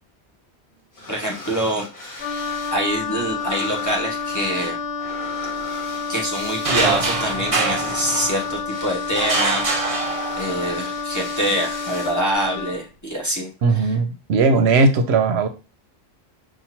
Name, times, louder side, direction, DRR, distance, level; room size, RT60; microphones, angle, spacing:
sound 1, 0.9-2.8 3.0-12.3, left 2 dB, 55° left, 1.3 m, -38 dB
voice 1, 1.1-1.9 2.7-4.8 6.1-9.7 10.4-13.9, right 1 dB, 20° left, -2 dB, 0.8 m, -25 dB
Wind instrument woodwind instrument, 2.2-12.8, left 5 dB, 75° left, 0.9 m, -29 dB
sound 2, 6.6-8.6 9.2-10.7, right 3 dB, 40° right, 0.6 m, -24 dB
voice 2, 13.6-15.5, right 3 dB, 80° right, 8 dB, 0.8 m, -18 dB
5.5 x 2.5 x 2.9 m, 0.31 s
omnidirectional pair, 1.1 m